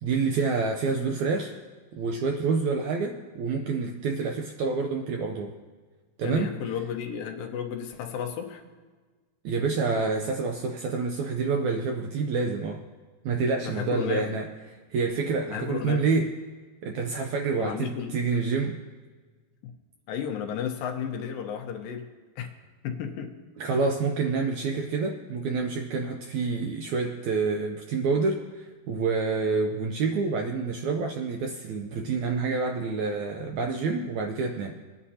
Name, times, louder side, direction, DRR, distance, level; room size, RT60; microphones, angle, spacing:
voice 1, 0.0-1.5 1.9-5.5 6.2-6.6 9.4-12.8 13.2-14.4 14.9-16.3 16.8-18.8 23.6-34.7, right 4 dB, 75° right, 3 dB, 1.7 m, -28 dB
voice 2, 6.2-8.6 13.6-14.3 15.5-16.0 17.6-18.2 20.1-22.1 22.4-22.5 22.8-23.3, left 7 dB, 75° left, 3 dB, 2.7 m, -33 dB
22.5 x 9.7 x 2.8 m, 1.4 s
omnidirectional pair, 4.1 m